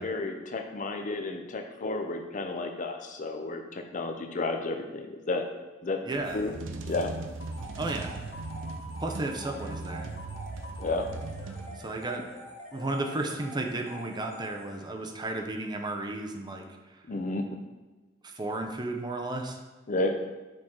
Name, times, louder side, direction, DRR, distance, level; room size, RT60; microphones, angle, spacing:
voice 1, 0.0-5.4 5.8-6.0 6.3-6.5 6.9-7.1 10.8-11.1 17.1-17.6 19.9-20.2, left 2 dB, 40° left, 6 dB, 0.6 m, -32 dB
voice 2, 6.1-6.4 7.8-8.1 9.0-10.1 11.8-12.2 12.7-16.6 18.2-19.6, right 2 dB, 20° right, 3 dB, 0.6 m, -33 dB
sound 1, 6.2-12.1, right 3 dB, 70° right, 0.5 m, -39 dB
sound 2, 7.4-15.2, equal, 75° left, 1.7 m, -46 dB
6.2 x 4.5 x 3.7 m, 1.2 s
head